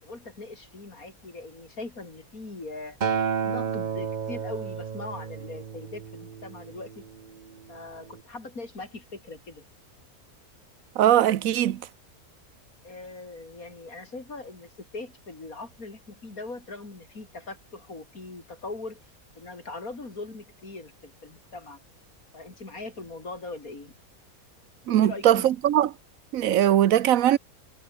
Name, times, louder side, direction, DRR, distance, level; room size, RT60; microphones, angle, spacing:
voice 1, 0.0-3.0 3.4-7.0 7.7-9.6 12.8-21.8 22.3-23.9 24.9-25.5, left 3 dB, 80° left, 4.7 m, -40 dB
Acoustic guitar, 3.0-7.3 8.1-8.2, right 7 dB, 40° right, 0.8 m, -31 dB
voice 2, 11.0-11.8 24.9-25.9 26.3-27.4, right 11 dB, 70° right, 1.2 m, -20 dB
omnidirectional pair, 1.5 m